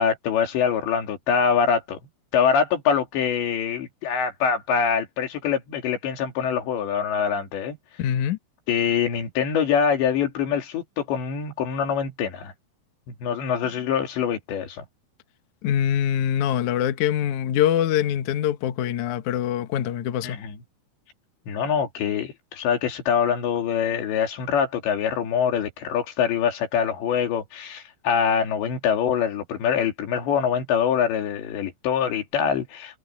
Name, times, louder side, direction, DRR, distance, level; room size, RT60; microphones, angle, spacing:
voice 1, 0.0-2.0 2.3-7.8 8.7-12.5 13.2-14.8 20.2-20.6 21.5-33.0, left 7 dB, 70° left, 5.0 m, -24 dB
voice 2, 8.0-8.4 15.6-20.4, left 10 dB, 85° left, 1.6 m, -24 dB
omnidirectional pair, 5.4 m